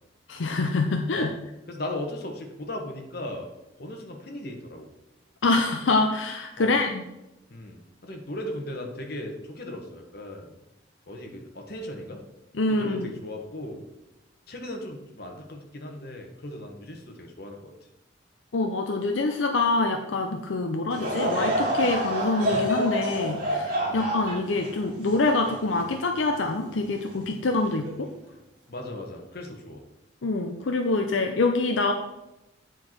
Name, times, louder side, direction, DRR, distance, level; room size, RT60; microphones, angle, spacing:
voice 1, 0.3-1.3 5.4-7.0 12.6-13.1 18.5-28.1 30.2-31.9, left 3 dB, 80° left, 4 dB, 0.6 m, -25 dB
voice 2, 1.7-3.5 3.8-4.9 6.6-6.8 7.5-10.5 11.1-12.2 12.7-13.8 14.5-17.7 23.8-24.1 28.7-29.8, left 1 dB, 55° left, 2 dB, 1.3 m, -37 dB
Laughter / Crowd, 20.9-26.4 26.9-27.0 27.8-28.1, right 1 dB, 45° right, 2.4 m, -28 dB
8.6 x 4.6 x 4.5 m, 0.93 s
head